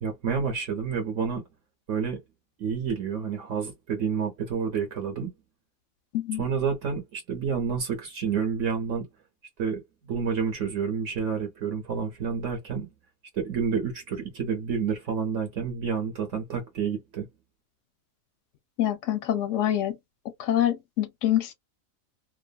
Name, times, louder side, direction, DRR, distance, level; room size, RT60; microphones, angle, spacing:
voice 1, 0.0-1.4 1.9-2.2 2.6-5.3 6.4-9.0 9.6-12.9 13.3-17.3, right 6 dB, 65° right, 1.1 m, -29 dB
voice 2, 18.8-20.0 20.4-21.5, left 12 dB, 70° left, 0.8 m, -25 dB
2.7 x 2.4 x 2.2 m
omnidirectional pair, 1.4 m